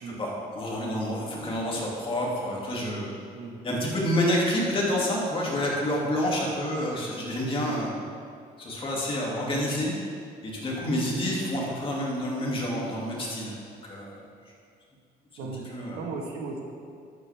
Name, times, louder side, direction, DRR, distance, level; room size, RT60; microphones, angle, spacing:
voice 1, 0.1-3.1 3.6-7.9 8.6-9.9 10.4-13.5 13.8-14.2 15.7-16.0, left 1 dB, 30° left, -4 dB, 2.5 m, -28 dB
voice 2, 3.3-3.6 7.6-7.9 10.8-11.1 15.4-16.6, right 4 dB, 80° right, 1 dB, 1.6 m, -37 dB
11.5 x 8.3 x 3.5 m, 2.3 s
cardioid pair, 110°, 17 cm